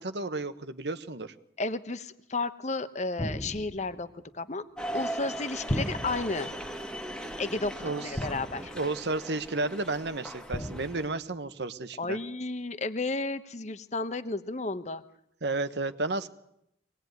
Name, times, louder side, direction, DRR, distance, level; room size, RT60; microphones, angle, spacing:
voice 1, 0.0-1.3 7.8-8.3 8.7-12.2 15.4-16.3, right 2 dB, 75° right, 10 dB, 1.2 m, -32 dB
voice 2, 1.6-4.6 4.9-6.5 7.4-7.7 8.0-8.7 12.0-15.0, left 3 dB, 40° left, 12 dB, 1.1 m, -32 dB
sound 1, 3.2-4.0 5.7-6.5 8.1-8.9 10.5-11.2, equal, 20° left, 1.1 m, -35 dB
sound 2, 4.8-11.1, right 1 dB, 5° left, 1.7 m, -39 dB
24.0 x 19.5 x 9.4 m, 0.78 s
head